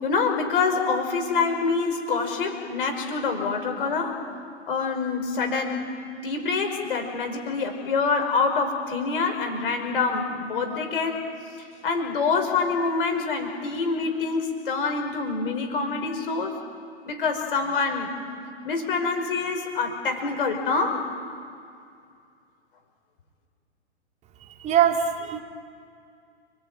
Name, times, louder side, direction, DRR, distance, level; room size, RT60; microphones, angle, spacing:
voice 1, 0.0-4.2 4.7-5.9 6.2-11.3 11.8-16.6 17.1-18.1 18.6-21.0, left 4 dB, 55° left, 5 dB, 5.4 m, -26 dB
voice 2, 24.6-25.4, right 9 dB, 20° right, 4 dB, 2.4 m, -22 dB
30.0 x 21.5 x 9.1 m, 2.4 s
figure-of-eight pair, 110°, 33 cm